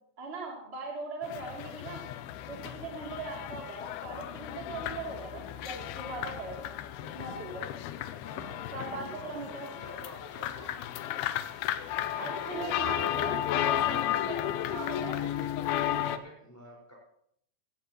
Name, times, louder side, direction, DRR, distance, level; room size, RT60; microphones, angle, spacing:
voice 1, 0.2-2.0 2.5-6.7 7.0-7.7 8.7-9.7 12.2-15.2, right 3 dB, 15° right, -2 dB, 2.7 m, -40 dB
sound 1, 1.2-16.2, left 12 dB, 80° left, 2.4 m, -34 dB
voice 2, 8.2-9.3 9.6-11.2 12.1-13.2 14.7-16.9, equal, 5° left, -3 dB, 4.7 m, -48 dB
16.0 x 16.0 x 3.1 m, 0.71 s
omnidirectional pair, 4.8 m